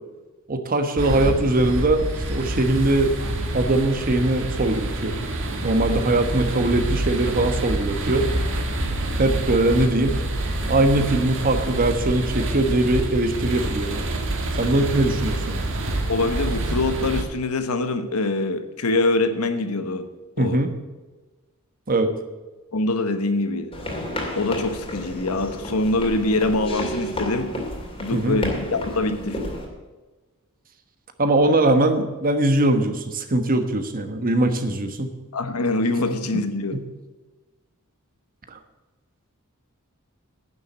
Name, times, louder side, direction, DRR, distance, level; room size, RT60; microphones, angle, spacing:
voice 1, 0.5-3.1 3.5-5.2 5.6-8.3 9.2-10.2 10.7-14.0 14.6-15.6 20.4-20.7 21.9-22.1 28.1-28.4 31.2-35.1 36.7-36.8 38.5-38.6, right 2 dB, 40° right, 7 dB, 1.3 m, -21 dB
sound 1, 1.0-17.2, right 1 dB, 60° right, 1.8 m, -27 dB
voice 2, 16.1-20.1 20.4-20.6 22.7-23.7 24.3-27.5 28.0-29.5 35.3-36.8, left 2 dB, 80° left, 9 dB, 1.1 m, -24 dB
sound 2, 23.7-29.7, left 1 dB, 25° left, 2.6 m, -31 dB
10.5 x 7.2 x 8.0 m, 1.2 s
head